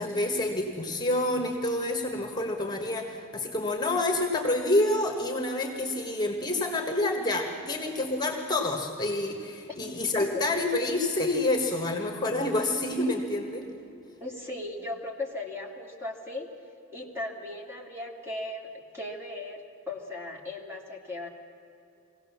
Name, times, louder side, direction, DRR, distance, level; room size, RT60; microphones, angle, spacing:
voice 1, 0.0-13.7, left 2 dB, 20° left, 3 dB, 1.6 m, -28 dB
voice 2, 10.2-10.5 14.2-16.5 16.9-21.3, left 2 dB, 10° right, 0 dB, 2.2 m, -37 dB
23.5 x 17.0 x 7.3 m, 2.7 s
head